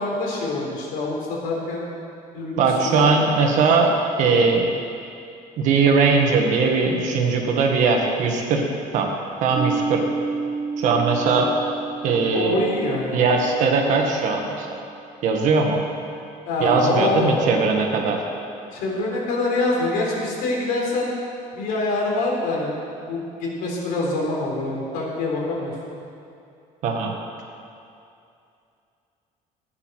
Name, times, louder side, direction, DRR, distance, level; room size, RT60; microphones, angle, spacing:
voice 1, 0.0-1.9 2.3-2.6 2.8-3.1 12.3-13.3 16.5-17.5 18.7-21.1 21.5-22.7 23.1-25.8, left 2 dB, 85° left, -3 dB, 4.0 m, -25 dB
voice 2, 2.6-3.9 4.2-4.7 5.6-8.6 8.9-9.1 9.4-10.0 10.8-11.5 12.0-12.6 13.1-14.7 15.2-15.8 16.6-18.2 26.8-27.1, right 4 dB, 55° right, 2 dB, 1.8 m, -20 dB
Piano, 9.6-14.9, right 4 dB, 40° right, 2.1 m, -31 dB
14.5 x 9.7 x 6.4 m, 2.6 s
cardioid pair, 175°, 15 cm